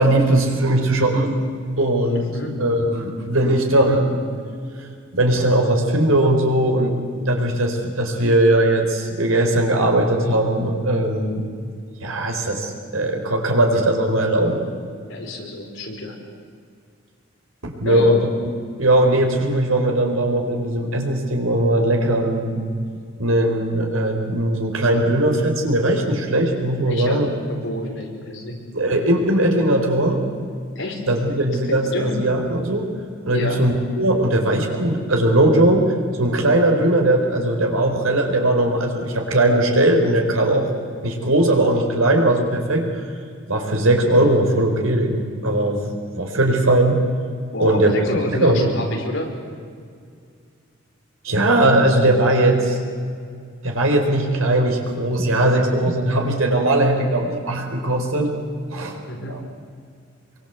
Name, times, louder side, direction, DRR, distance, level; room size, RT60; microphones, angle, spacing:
voice 1, 0.0-1.4 1.8-4.2 4.8-4.9 5.1-11.5 12.0-14.6 17.6-18.3 18.8-22.6 23.2-27.3 28.7-30.2 31.1-32.9 33.2-35.8 36.2-40.7 41.0-43.0 43.5-47.0 47.6-47.9 48.3-48.7 51.2-52.8 53.6-58.3 58.7-59.0 59.3-59.4, right 1 dB, 80° right, 3 dB, 4.6 m, -19 dB
voice 2, 2.1-2.6 15.1-16.1 17.8-18.2 26.8-27.2 27.5-28.6 30.8-31.0 31.6-32.2 33.3-33.6 47.5-49.3 59.1-59.4, left 1 dB, 65° left, 1 dB, 5.2 m, -28 dB
25.5 x 23.5 x 8.3 m, 2.2 s
head